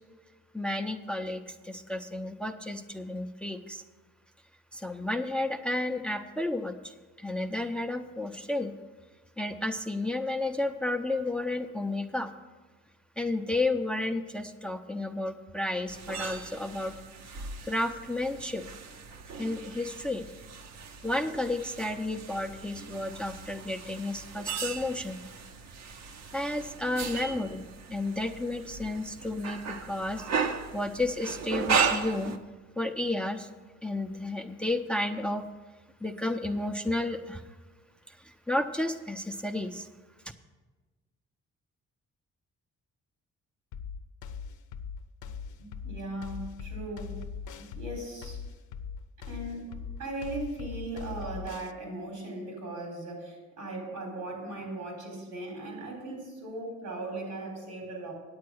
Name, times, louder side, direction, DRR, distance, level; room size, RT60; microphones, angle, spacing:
voice 1, 0.5-3.8 4.7-6.9 7.2-8.7 9.4-12.3 13.2-16.9 17.6-18.7 19.3-20.3 21.0-25.2 26.3-27.6 27.9-32.3 32.8-33.5 33.8-35.4 36.0-37.4 38.1-39.9, left 2 dB, 5° left, 7 dB, 0.6 m, -32 dB
sound 1, 15.9-32.4, right 6 dB, 60° right, 0.9 m, -36 dB
sound 2, 43.7-51.7, left 6 dB, 75° left, 0.7 m, -40 dB
voice 2, 45.6-47.2 47.6-48.4 49.2-58.1, right 2 dB, 90° right, 1 dB, 4.0 m, -38 dB
9.6 x 8.3 x 6.3 m, 1.3 s
cardioid pair, 90°, 30 cm